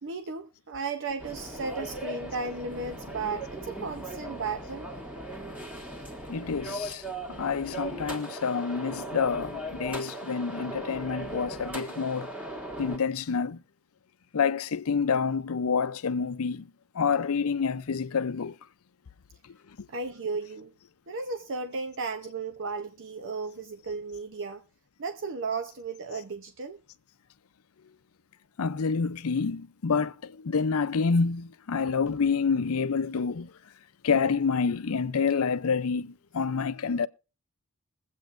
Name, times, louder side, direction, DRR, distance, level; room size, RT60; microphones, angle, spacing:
voice 1, 0.0-4.9 19.9-20.7 21.1-24.6 25.0-26.8, right 4 dB, 60° right, 0.7 m, -35 dB
sound 1, 1.2-13.0, right 1 dB, 5° right, 1.7 m, -38 dB
voice 2, 6.3-7.0 7.3-12.3 12.8-13.6 14.3-16.7 16.9-18.5 28.6-33.5 34.0-37.1, left 5 dB, 75° left, 0.5 m, -28 dB
22.0 x 8.2 x 2.5 m
head